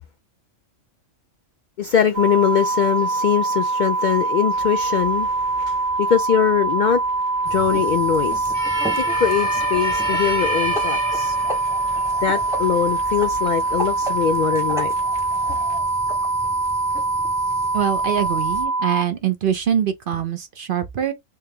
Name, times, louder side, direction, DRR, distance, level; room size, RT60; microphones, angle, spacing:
voice 1, 1.8-7.0 7.5-8.5 9.0-11.4 11.9-14.9, left 8 dB, 75° left, 0.4 m, -22 dB
sound 1, 2.1-19.0, right 3 dB, 90° right, 1.2 m, -23 dB
sound 2, 4.5-15.8, equal, 35° right, 1.2 m, -33 dB
sound 3, 7.4-18.6, equal, 5° right, 0.6 m, -35 dB
voice 2, 17.7-21.1, right 9 dB, 55° right, 0.7 m, -23 dB
3.5 x 2.9 x 3.2 m
omnidirectional pair, 1.3 m